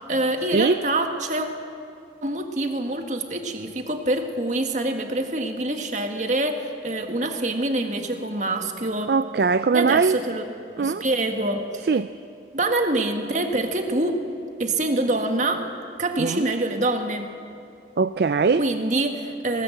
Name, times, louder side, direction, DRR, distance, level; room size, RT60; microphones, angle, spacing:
voice 1, 0.0-1.5 2.2-9.1 9.7-10.4 10.8-11.9 12.5-14.2 14.6-15.7 16.0-17.3 18.6-19.6, right 2 dB, 40° right, 5 dB, 1.6 m, -25 dB
voice 2, 9.1-10.2 10.8-11.0 11.9-12.1 16.2-16.5 18.0-18.6, right 4 dB, 60° right, 12 dB, 0.4 m, -21 dB
19.5 x 18.5 x 7.8 m, 2.6 s
head